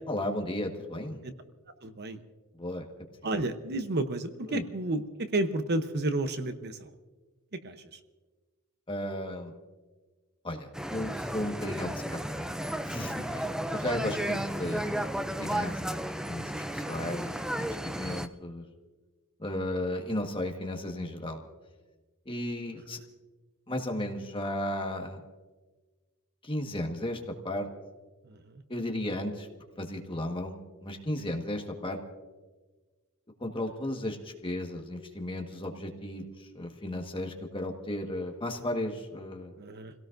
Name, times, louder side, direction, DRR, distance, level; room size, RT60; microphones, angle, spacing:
voice 1, 0.1-1.2 2.6-2.9 4.5-4.6 8.9-9.5 10.4-12.5 12.8-13.5 13.7-15.0 15.4-18.6 19.4-21.4 22.2-23.0 23.7-25.2 26.4-27.7 28.7-29.5 29.8-32.0 33.4-39.5, left 1 dB, 25° left, 3 dB, 1.5 m, -34 dB
voice 2, 1.8-2.2 3.2-6.9 7.5-8.0 13.2-14.1 18.2-18.3 28.2-28.6 39.6-39.9, right 2 dB, 50° right, 9 dB, 0.8 m, -32 dB
sound 1, 10.7-18.3, right 1 dB, 5° right, 0.4 m, -33 dB
29.0 x 17.0 x 2.6 m, 1.3 s
head